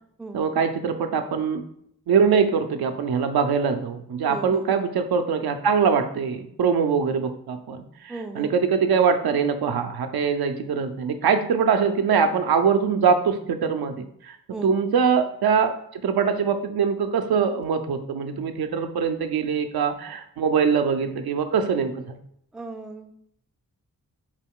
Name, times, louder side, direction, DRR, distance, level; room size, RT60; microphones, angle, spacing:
voice 1, 0.3-1.6 2.1-14.4 14.6-22.2, right 6 dB, 85° right, 7 dB, 0.5 m, -23 dB
voice 2, 4.3-4.9 8.1-8.5 14.5-14.7 22.5-23.1, right 3 dB, ahead, 6 dB, 0.3 m, -36 dB
4.8 x 2.3 x 3.6 m, 0.70 s
cardioid pair, 60°, 36 cm